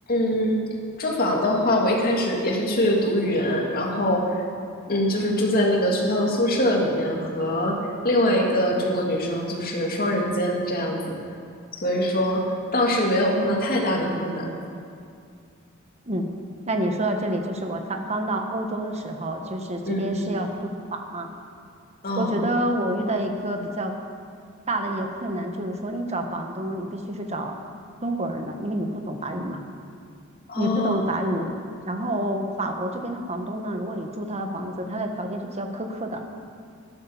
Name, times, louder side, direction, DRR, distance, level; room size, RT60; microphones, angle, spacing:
voice 1, 0.1-0.6 1.0-4.2 4.9-7.8 8.0-11.2 11.8-12.4 12.7-14.5 19.9-20.2 22.0-22.5 30.5-31.3, left 1 dB, 45° left, -1 dB, 2.5 m, -23 dB
voice 2, 16.7-20.5 20.9-21.3 22.1-23.9 24.7-27.6 28.0-29.6 30.6-31.5 31.8-36.2, right 1 dB, 30° right, 4 dB, 1.4 m, -28 dB
13.0 x 12.0 x 7.3 m, 2.3 s
head